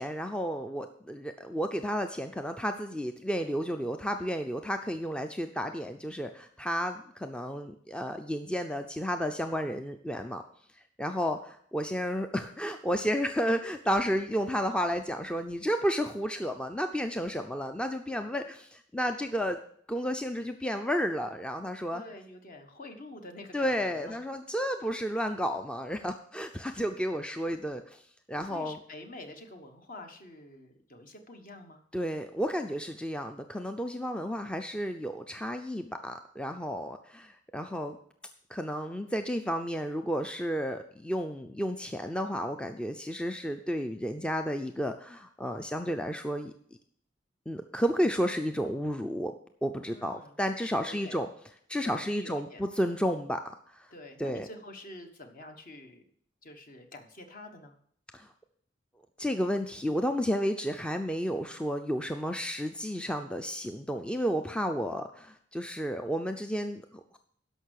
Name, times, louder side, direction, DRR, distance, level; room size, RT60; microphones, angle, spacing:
voice 1, 0.0-10.4 11.0-19.6 19.9-22.0 23.5-28.0 28.3-28.8 31.9-38.0 38.5-46.5 47.5-49.3 49.6-51.3 51.7-53.4 53.7-53.9 54.2-54.5 58.1-58.3 59.2-67.2, equal, 5° left, 7 dB, 0.4 m, -32 dB
voice 2, 21.9-24.2 28.4-31.8 49.9-51.2 51.8-52.6 53.9-56.0 56.4-57.7, left 2 dB, 45° left, 6 dB, 1.3 m, -47 dB
12.5 x 5.5 x 6.4 m, 0.65 s
head